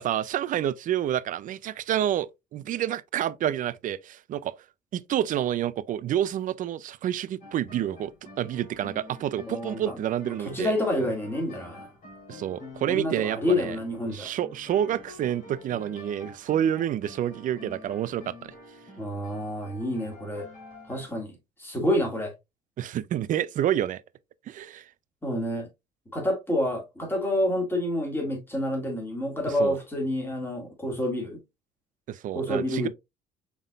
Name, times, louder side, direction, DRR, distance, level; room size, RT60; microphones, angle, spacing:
voice 1, 0.0-4.5 4.9-8.1 8.4-10.7 12.3-13.8 14.1-18.5 22.8-24.0 24.5-24.8 29.6-29.8 32.1-32.9, right 11 dB, 50° right, 0.4 m, -28 dB
sound 1, 7.4-21.1, left 2 dB, 50° left, 3.0 m, -47 dB
voice 2, 9.5-10.0 10.2-11.8 12.9-14.3 19.0-20.5 20.9-22.3 25.2-25.7 26.1-31.4 32.3-32.9, left 1 dB, 15° left, 2.1 m, -28 dB
5.6 x 3.6 x 2.4 m
cardioid pair, 110°, 17 cm